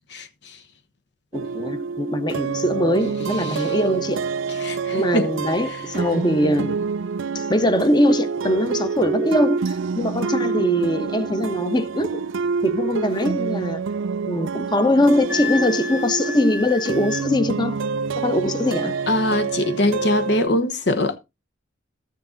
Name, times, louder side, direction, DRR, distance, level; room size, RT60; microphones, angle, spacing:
voice 1, 0.1-0.6 3.4-3.7 4.6-5.3 5.7-5.8 19.1-21.2, left 1 dB, 60° left, 1.0 m, -23 dB
voice 2, 1.3-4.3 4.9-6.9 7.3-12.2 12.6-13.8 14.3-17.8 18.2-18.9, left 1 dB, 20° left, 0.9 m, -22 dB
sound 1, 1.3-20.5, right 5 dB, 80° right, 0.5 m, -27 dB
Wind instrument woodwind instrument, 15.3-17.3, left 4 dB, 5° right, 1.1 m, -31 dB
13.5 x 6.7 x 3.8 m
head